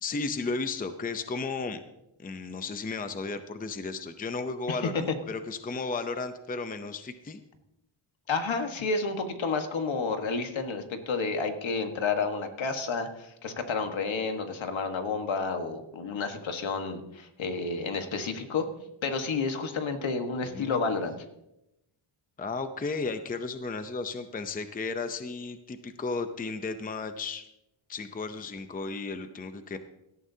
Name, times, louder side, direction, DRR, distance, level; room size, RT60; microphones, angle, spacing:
voice 1, 0.0-1.8 2.2-7.4 20.4-20.9 22.4-27.4 27.9-29.8, left 4 dB, 20° left, 9 dB, 0.6 m, -34 dB
voice 2, 4.7-5.0 8.3-18.7 19.0-21.2, left 4 dB, 65° left, 6 dB, 1.5 m, -30 dB
17.5 x 13.0 x 2.8 m, 0.87 s
wide cardioid pair, 150°, 49 cm